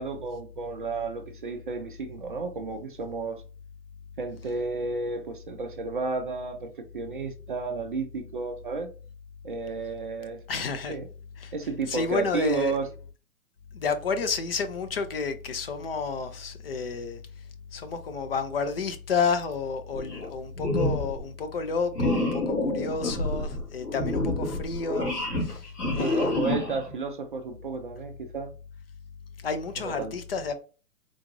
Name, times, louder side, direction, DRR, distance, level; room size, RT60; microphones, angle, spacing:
voice 1, 0.0-3.4 4.2-8.9 9.4-11.1 11.5-12.9 26.0-28.5 29.8-30.1, right 4 dB, 35° right, 0.4 m, -32 dB
voice 2, 10.5-10.9 11.4-11.5 11.9-12.7 13.7-17.2 17.7-25.7 25.9-26.4 29.4-30.5, left 5 dB, 40° left, 0.5 m, -30 dB
sound 1, 19.9-20.3 20.6-21.2 21.9-26.9, left 2 dB, 85° left, 1.5 m, -28 dB
3.8 x 2.4 x 3.0 m
figure-of-eight pair, 130°, 45 cm